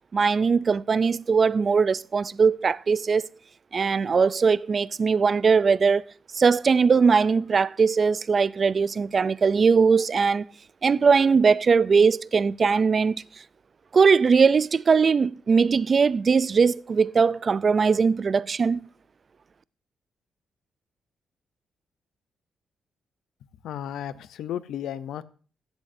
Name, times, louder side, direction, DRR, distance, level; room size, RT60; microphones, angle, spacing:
voice 1, 0.1-3.3 3.7-6.0 6.3-10.5 10.8-13.1 13.9-18.8, right 5 dB, 40° right, 0.4 m, -20 dB
voice 2, 23.6-25.2, left 10 dB, 90° left, 0.7 m, -33 dB
15.5 x 11.5 x 2.7 m
cardioid pair, 110°, 0 cm